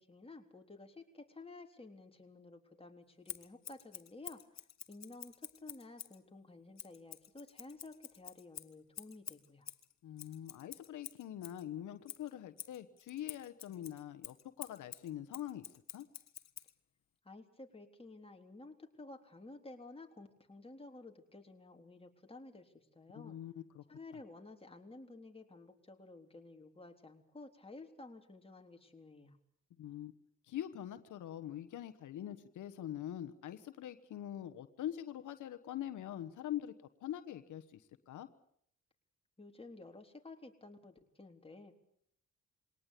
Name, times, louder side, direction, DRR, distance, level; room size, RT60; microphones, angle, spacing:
voice 1, 0.0-4.4 4.9-9.7 17.2-23.4 23.9-29.4 39.4-41.7, left 2 dB, 20° left, 3 dB, 3.6 m, -53 dB
Scissors, 3.3-6.2 6.8-11.6 12.1-16.7, left 10 dB, 65° left, 1.5 m, -49 dB
voice 2, 10.0-15.7 15.9-16.1 23.1-23.8 29.8-30.1 30.5-36.7 37.0-38.3, left 11 dB, 85° left, 10 dB, 1.2 m, -44 dB
22.0 x 18.5 x 8.4 m, 0.67 s
cardioid pair, 75°, 30 cm